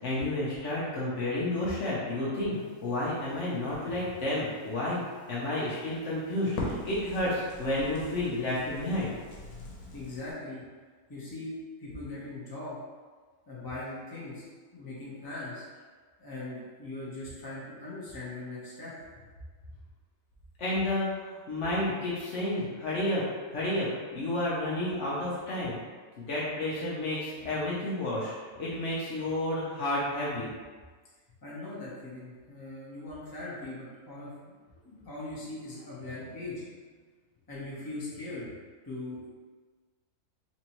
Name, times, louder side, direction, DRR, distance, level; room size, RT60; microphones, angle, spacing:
voice 1, 0.0-9.1 20.6-23.2 23.5-25.8 26.2-30.5, left 1 dB, 60° left, -7 dB, 1.0 m, -31 dB
Crackle, 2.5-10.3, left 2 dB, 90° left, 1.3 m, -43 dB
voice 2, 9.9-10.6 11.1-11.5 11.8-12.8 13.5-14.4 14.7-15.6 16.2-18.9 31.4-34.5 34.8-36.5 37.5-38.5 38.8-39.3, left 2 dB, 20° left, -8 dB, 0.9 m, -40 dB
4.1 x 2.6 x 3.0 m, 1.5 s
omnidirectional pair, 1.5 m